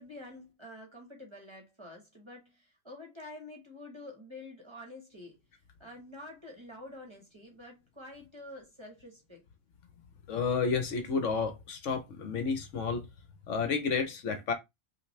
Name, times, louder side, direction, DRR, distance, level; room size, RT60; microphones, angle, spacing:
voice 1, 0.0-5.4 5.8-9.4, left 1 dB, 20° right, 1.2 m, -48 dB
voice 2, 10.3-13.1 13.5-14.5, left 5 dB, 65° left, 1.0 m, -31 dB
5.7 x 2.6 x 3.2 m
omnidirectional pair, 1.4 m